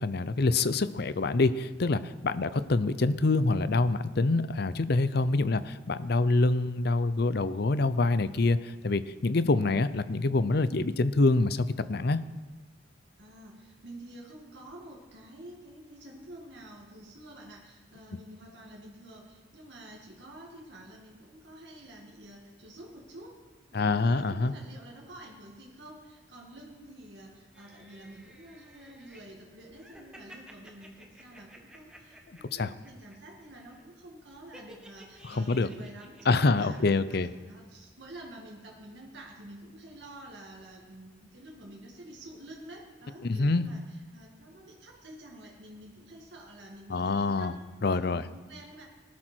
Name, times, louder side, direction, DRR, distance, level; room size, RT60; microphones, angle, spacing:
voice 1, 0.0-12.2 23.7-24.5 32.5-32.7 35.2-35.7 36.3-37.3 43.2-43.6 46.9-47.5 47.8-48.2, left 3 dB, 55° left, 14 dB, 0.6 m, -26 dB
voice 2, 13.2-23.3 23.7-36.8 37.1-47.6 47.9-48.9, right 1 dB, 60° right, -2 dB, 2.2 m, -49 dB
sound 1, 27.5-29.2 29.7-33.2 33.4-33.8 34.5-37.0 37.3-37.4, equal, 5° right, 1.5 m, -54 dB
19.0 x 12.0 x 4.5 m, 1.3 s
head